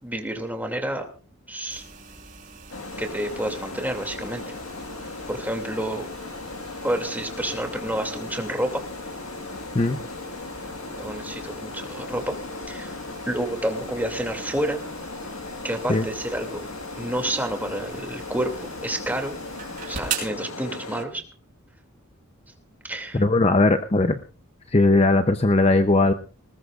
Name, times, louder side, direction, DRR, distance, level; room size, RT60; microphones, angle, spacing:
voice 1, 0.0-1.1 1.5-1.9 3.0-4.4 5.3-6.1 6.8-8.8 11.0-12.4 12.7-14.8 15.6-16.6 17.0-19.3 19.9-21.2 22.8-23.2, right 1 dB, 10° right, 4 dB, 2.5 m, -29 dB
sound 1, 1.7-20.3, right 6 dB, 40° right, 5.7 m, -42 dB
sound 2, 2.7-21.1, left 3 dB, 85° left, 1.6 m, -37 dB
voice 2, 23.1-24.2 24.7-26.1, left 2 dB, 30° left, 9 dB, 0.7 m, -19 dB
20.0 x 20.0 x 2.5 m, 0.36 s
head